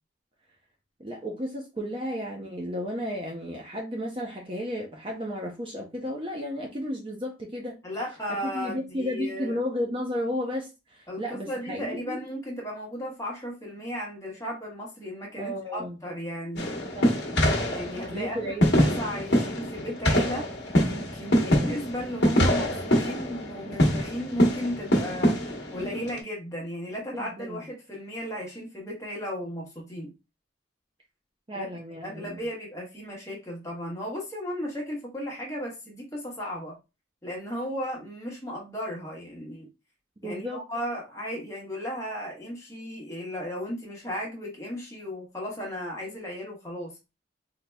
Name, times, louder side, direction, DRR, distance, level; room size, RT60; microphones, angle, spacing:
voice 1, 1.0-7.8 8.4-12.2 15.4-16.0 17.0-17.2 18.1-19.0 21.4-21.8 27.1-27.6 31.5-32.4 40.2-40.6, equal, 25° right, 0.6 m, -33 dB
voice 2, 7.8-9.6 11.1-16.7 17.7-20.5 20.8-25.4 25.7-30.1 31.5-31.7 32.0-36.8 37.2-39.7 40.2-47.0, equal, 15° left, 1.1 m, -35 dB
sound 1, 16.6-26.2, equal, 60° left, 1.0 m, -25 dB
4.1 x 2.9 x 2.2 m
head